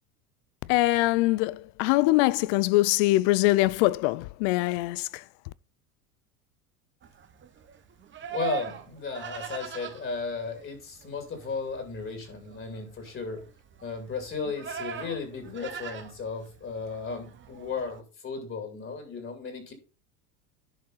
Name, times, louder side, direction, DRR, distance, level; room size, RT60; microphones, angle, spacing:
voice 1, 0.7-5.2, left 19 dB, 60° left, 0.5 m, -23 dB
Livestock farm animals working animals, 7.0-18.0, right 9 dB, 25° right, 1.1 m, -41 dB
voice 2, 8.3-13.4 13.8-19.7, left 4 dB, 30° left, 2.6 m, -35 dB
11.0 x 5.2 x 3.9 m
supercardioid pair, 105°, 42 cm